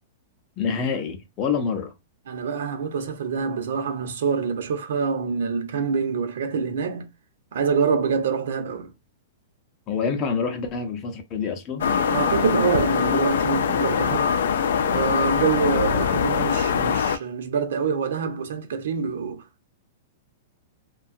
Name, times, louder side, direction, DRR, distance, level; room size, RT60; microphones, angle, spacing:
voice 1, 0.6-1.9 9.9-11.9, left 6 dB, 25° left, 0.6 m, -27 dB
voice 2, 2.3-7.1 7.5-8.9 12.1-14.3 14.8-19.4, right 6 dB, 70° right, 0.7 m, -26 dB
sound 1, 11.8-17.2, left 7 dB, 75° left, 0.5 m, -22 dB
2.7 x 2.3 x 2.5 m
supercardioid pair, 170°, 0 cm